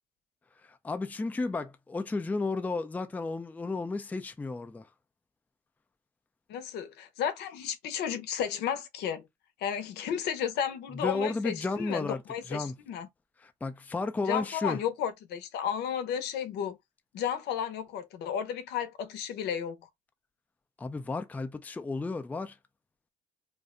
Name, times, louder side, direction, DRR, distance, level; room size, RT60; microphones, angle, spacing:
voice 1, 0.7-4.9 10.9-12.2 12.5-12.7 13.4-14.8 20.8-22.6, left 3 dB, 10° left, 0.4 m, -33 dB
voice 2, 6.5-9.3 9.6-13.1 14.2-16.8 17.1-19.8, left 8 dB, 80° left, 0.7 m, -33 dB
2.6 x 2.1 x 3.6 m
cardioid pair, 110°, 17 cm